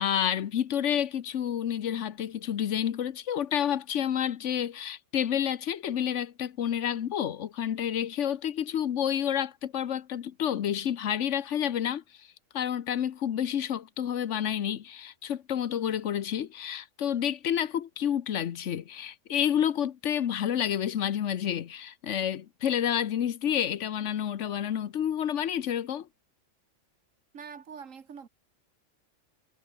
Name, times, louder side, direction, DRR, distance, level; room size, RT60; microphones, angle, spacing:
voice 1, 0.0-12.0 12.5-26.1, left 9 dB, 70° left, 1.2 m, -29 dB
voice 2, 27.3-28.3, right 6 dB, 85° right, 1.9 m, -44 dB
omnidirectional pair, 1.3 m